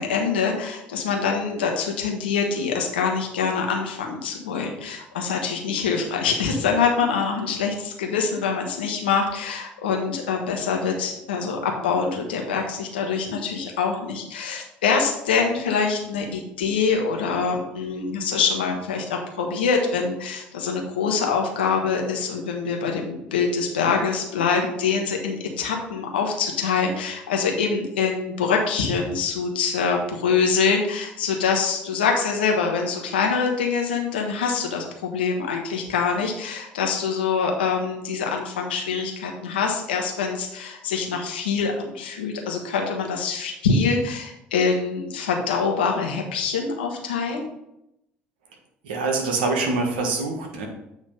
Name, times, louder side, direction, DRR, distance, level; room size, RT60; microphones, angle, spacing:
voice 1, 0.0-47.4, left 5 dB, 80° left, 2 dB, 1.0 m, -24 dB
voice 2, 48.8-50.7, right 3 dB, 75° right, 2 dB, 1.3 m, -25 dB
8.3 x 3.1 x 5.3 m, 0.84 s
figure-of-eight pair, 60°, 5 cm